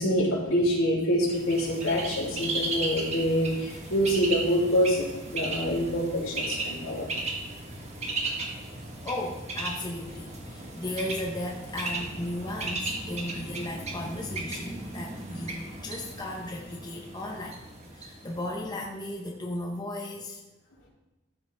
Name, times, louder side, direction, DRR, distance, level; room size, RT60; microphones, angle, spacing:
voice 1, 0.0-7.0, equal, 75° left, -5 dB, 3.2 m, -26 dB
Bird, 1.3-19.0, right 2 dB, 30° right, 1.3 m, -36 dB
voice 2, 9.0-17.6 17.9-20.4, left 1 dB, 20° left, 0 dB, 0.8 m, -35 dB
13.5 x 5.8 x 3.5 m, 1.1 s
head